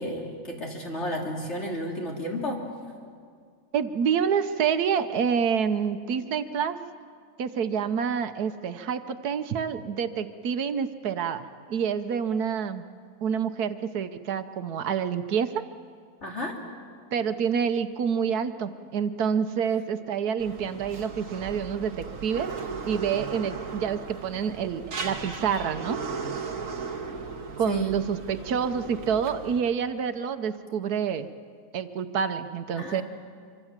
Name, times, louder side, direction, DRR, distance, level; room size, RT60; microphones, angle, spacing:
voice 1, 0.0-2.6 16.2-16.6 27.7-27.9 32.8-33.0, left 1 dB, 45° left, 0 dB, 3.4 m, -32 dB
voice 2, 3.7-6.8 7.4-12.8 13.2-15.6 17.1-22.5 22.9-26.0 27.6-31.3 31.7-33.0, right 7 dB, 75° right, 10 dB, 1.4 m, -27 dB
sound 1, 20.4-29.6, right 5 dB, 55° right, 1.8 m, -36 dB
25.0 x 25.0 x 7.3 m, 2.1 s
omnidirectional pair, 1.7 m